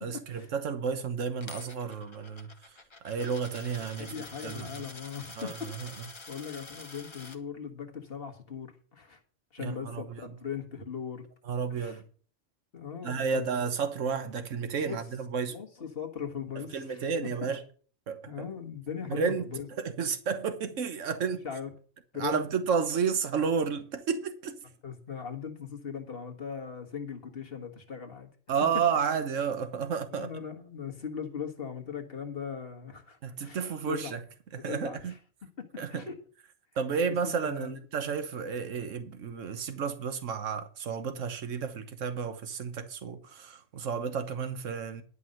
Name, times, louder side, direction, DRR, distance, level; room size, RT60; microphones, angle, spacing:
voice 1, 0.0-2.5 3.0-4.1 4.4-4.7 5.4-5.9 9.6-10.3 11.4-12.0 13.0-15.6 16.6-17.6 18.1-18.4 19.1-21.4 22.2-24.6 28.5-30.3 33.2-34.2 34.5-35.1 35.8-36.1 36.8-45.0, right 6 dB, 80° right, 1.5 m, -32 dB
Coin (dropping), 1.4-7.4, left 3 dB, 25° left, 1.0 m, -47 dB
voice 2, 4.1-6.0 6.3-9.2 9.5-11.3 11.7-12.0 12.7-13.6 14.8-15.0 15.5-17.5 18.3-19.7 21.4-21.7 22.1-22.4 24.8-28.3 30.1-34.2 34.7-35.2 35.6-36.2 37.1-37.8, left 7 dB, 50° left, 1.7 m, -39 dB
11.5 x 5.5 x 7.6 m
omnidirectional pair, 1.3 m